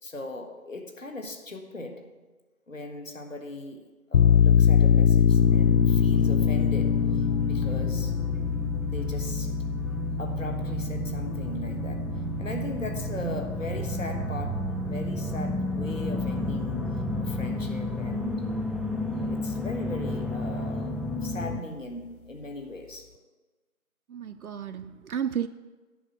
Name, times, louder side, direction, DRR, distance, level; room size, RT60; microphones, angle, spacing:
voice 1, 0.0-2.1 2.7-8.1 8.8-9.5 10.2-12.1 12.4-16.8 17.2-18.5 19.2-20.9 21.2-23.1, left 2 dB, 65° left, 4 dB, 1.6 m, -39 dB
sound 1, 4.1-15.4, left 7 dB, 90° left, 0.5 m, -24 dB
sound 2, 5.3-21.6, equal, ahead, 0.3 m, -32 dB
voice 2, 24.1-25.5, right 8 dB, 80° right, 8 dB, 0.5 m, -32 dB
10.0 x 5.5 x 7.6 m, 1.3 s
figure-of-eight pair, 165°, 42 cm